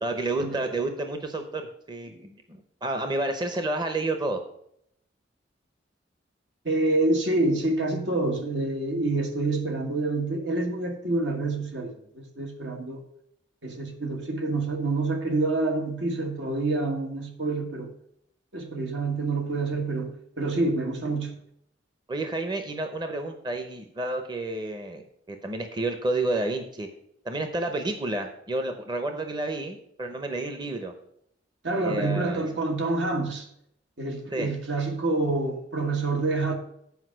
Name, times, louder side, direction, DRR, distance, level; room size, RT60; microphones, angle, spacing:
voice 1, 0.0-4.4 22.1-26.9 27.2-30.9 31.8-32.4 34.3-34.5, right 2 dB, 25° right, 0.7 m, -30 dB
voice 2, 6.6-13.0 13.6-17.9 18.5-21.3 31.6-33.5 34.0-36.5, right 2 dB, 80° right, 1.5 m, -27 dB
8.1 x 4.9 x 6.2 m
head